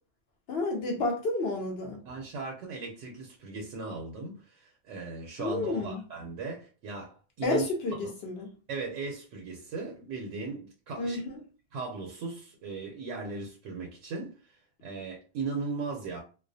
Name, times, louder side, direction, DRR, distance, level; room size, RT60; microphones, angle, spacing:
voice 1, 0.5-2.0 5.4-6.0 7.4-8.5 11.0-11.4, left 2 dB, 65° left, 0.7 m, -30 dB
voice 2, 2.0-7.6 8.7-11.2 11.7-16.2, right 4 dB, 80° right, 0.9 m, -37 dB
2.3 x 2.1 x 2.6 m
omnidirectional pair, 1.2 m